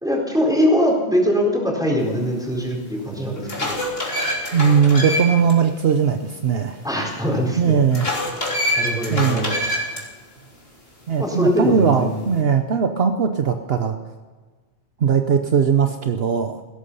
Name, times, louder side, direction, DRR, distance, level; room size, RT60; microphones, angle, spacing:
voice 1, 0.0-3.8 6.8-7.8 8.8-9.5 11.2-12.2, equal, 5° right, -2 dB, 4.4 m, -22 dB
sound 1, 2.5-2.6 3.2-5.5 5.9-6.0 7.9-10.0, left 1 dB, 60° left, 3.6 m, -25 dB
voice 2, 4.5-6.8 7.6-8.1 9.1-9.5 11.1-14.0 15.0-16.6, right 7 dB, 65° right, 7 dB, 1.1 m, -19 dB
17.0 x 13.0 x 5.5 m, 1.4 s
omnidirectional pair, 1.1 m